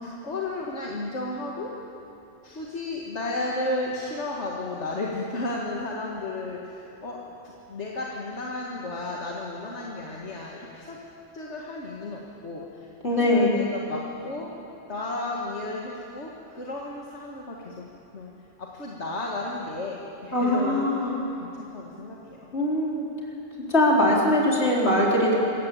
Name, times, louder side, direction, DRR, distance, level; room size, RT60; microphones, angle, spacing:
voice 1, 0.0-1.7 2.4-7.2 7.4-11.0 11.3-12.9 13.2-14.5 14.9-17.9 18.1-18.3 18.6-22.5, left 2 dB, 85° left, -3 dB, 2.2 m, -33 dB
voice 2, 13.0-13.6 20.3-21.2 22.5-23.1 23.6-25.4, left 1 dB, 70° left, -4 dB, 4.7 m, -22 dB
26.0 x 15.0 x 8.7 m, 2.8 s
omnidirectional pair, 1.2 m